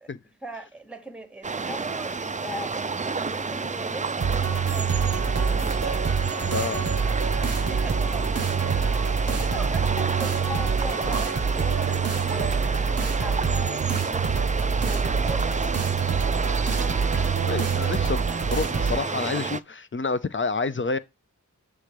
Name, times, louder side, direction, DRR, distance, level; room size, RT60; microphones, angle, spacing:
voice 1, 0.0-5.2 7.6-8.5 9.3-15.6, right 1 dB, 5° right, 1.1 m, -40 dB
sound 1, 1.4-19.6, right 4 dB, 25° right, 0.3 m, -30 dB
sound 2, 4.2-19.0, right 5 dB, 45° right, 0.7 m, -26 dB
voice 2, 6.5-6.9 17.4-21.0, left 4 dB, 35° left, 0.6 m, -29 dB
8.0 x 3.8 x 4.6 m
wide cardioid pair, 45°, 34 cm